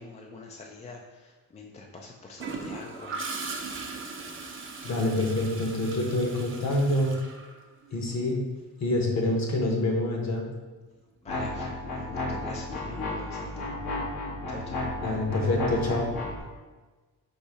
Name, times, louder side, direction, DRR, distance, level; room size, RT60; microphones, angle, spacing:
voice 1, 0.0-3.2 11.2-13.5 14.5-14.8, left 3 dB, 20° left, 0 dB, 0.3 m, -44 dB
Gurgling / Toilet flush, 2.4-8.1 10.1-10.4, right 3 dB, 35° right, 0.5 m, -39 dB
voice 2, 4.8-7.1 7.9-8.4 8.8-10.4 15.0-16.1, left 1 dB, 45° left, 1 dB, 0.9 m, -26 dB
sound 1, 11.3-16.4, left 2 dB, 80° left, 1.3 m, -33 dB
4.1 x 2.6 x 4.8 m, 1.3 s
wide cardioid pair, 150°, 36 cm